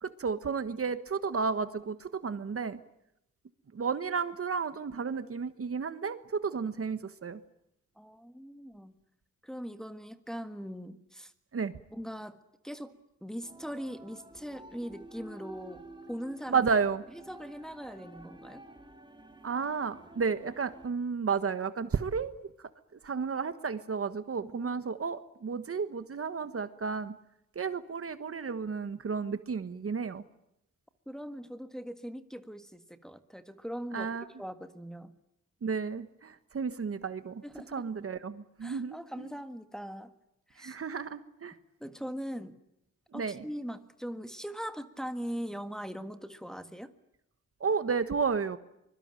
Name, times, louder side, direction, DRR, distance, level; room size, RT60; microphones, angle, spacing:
voice 1, 0.0-2.8 3.7-7.4 11.5-11.7 16.5-17.0 19.4-27.1 27.5-30.2 33.9-34.2 35.6-39.3 40.6-41.5 43.1-43.4 47.6-48.6, right 5 dB, 45° right, 12 dB, 1.4 m, -32 dB
voice 2, 8.0-8.9 9.4-11.3 11.9-12.4 12.6-12.9 13.2-15.8 16.1-16.6 17.3-18.6 24.4-24.7 31.1-35.1 37.4-37.7 38.6-40.1 40.5-40.8 41.8-42.6 43.1-46.9, equal, ahead, 8 dB, 1.6 m, -40 dB
sound 1, 13.4-20.9, right 1 dB, 15° right, 3.0 m, -52 dB
24.5 x 22.5 x 9.0 m, 0.81 s
wide cardioid pair, 130°, 32 cm